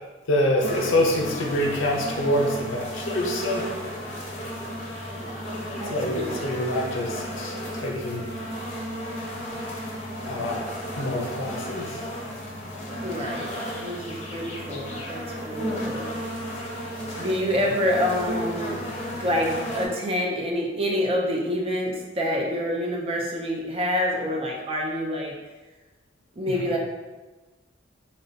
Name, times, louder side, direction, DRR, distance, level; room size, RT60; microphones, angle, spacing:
voice 1, 0.3-3.7 5.9-8.3 10.3-12.1 26.5-26.6, left 1 dB, 85° left, -1 dB, 0.6 m, -26 dB
sound 1, 0.6-19.9, equal, 35° left, 0.6 m, -33 dB
voice 2, 5.1-5.5 5.8-6.4 13.0-13.5 13.8-16.1 17.2-18.8 19.1-25.3 26.4-26.8, left 1 dB, 30° right, -1 dB, 0.4 m, -27 dB
3.8 x 2.1 x 2.6 m, 1.2 s
head